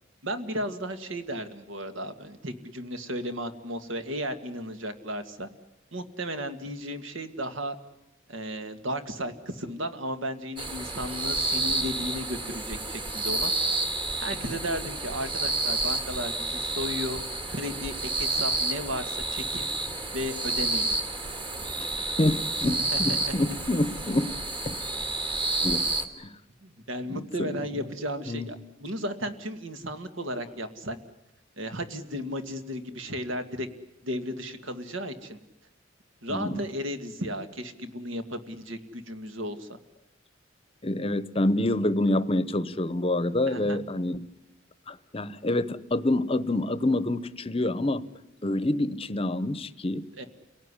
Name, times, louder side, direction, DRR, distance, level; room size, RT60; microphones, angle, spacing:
voice 1, 0.2-5.5 5.9-7.8 8.3-13.5 14.2-17.2 17.5-19.7 20.1-20.9 22.6-23.1 26.6-31.0 31.6-33.7 34.0-35.4 36.2-39.7 43.5-43.8 50.2-50.3, equal, 70° right, 9 dB, 2.0 m, -34 dB
sound 1, 10.6-26.0, right 2 dB, 25° right, 1.9 m, -30 dB
voice 2, 21.8-24.4 24.6-24.8 25.6-26.4 27.1-27.9 28.3-28.5 36.3-36.6 40.8-44.3 44.9-48.1 48.4-50.1, left 1 dB, 30° left, 16 dB, 0.9 m, -27 dB
29.5 x 18.0 x 9.9 m, 0.92 s
head